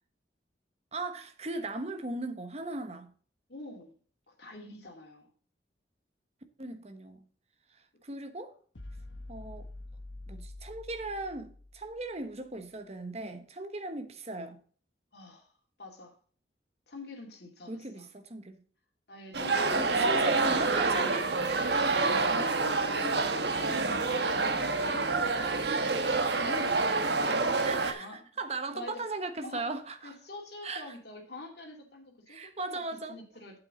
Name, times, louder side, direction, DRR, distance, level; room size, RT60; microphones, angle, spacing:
voice 1, 0.9-3.1 6.6-7.2 8.0-8.5 9.3-9.7 10.3-14.6 17.7-18.6 19.7-21.6 22.1-22.2 22.5-22.6 27.6-30.1 30.6-30.9 32.3-33.1, right 2 dB, 35° right, 1.1 m, -38 dB
voice 2, 3.5-3.9 4.3-5.3 15.1-15.5 15.8-16.1 16.9-18.1 19.1-20.3 22.0-28.2 28.7-29.1 29.4-29.7 30.0-32.8 33.1-33.6, left 2 dB, 60° left, 2.7 m, -45 dB
sound 1, 8.7-12.2, left 2 dB, 80° left, 1.2 m, -46 dB
sound 2, 19.3-27.9, right 3 dB, 65° right, 1.2 m, -27 dB
8.4 x 8.2 x 3.9 m
head